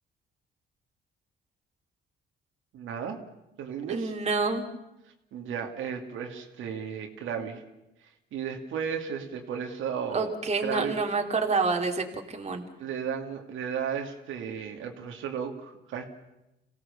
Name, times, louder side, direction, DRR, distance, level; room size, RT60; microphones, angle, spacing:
voice 1, 2.7-3.2 3.6-4.1 5.3-7.6 8.3-10.3 10.6-11.0 12.8-16.0, right 7 dB, 80° right, 3 dB, 2.5 m, -34 dB
voice 2, 3.9-4.7 7.4-7.5 10.1-12.6, right 4 dB, 35° right, 3 dB, 2.8 m, -28 dB
27.0 x 16.5 x 6.9 m, 0.92 s
cardioid pair, 90°, 20 cm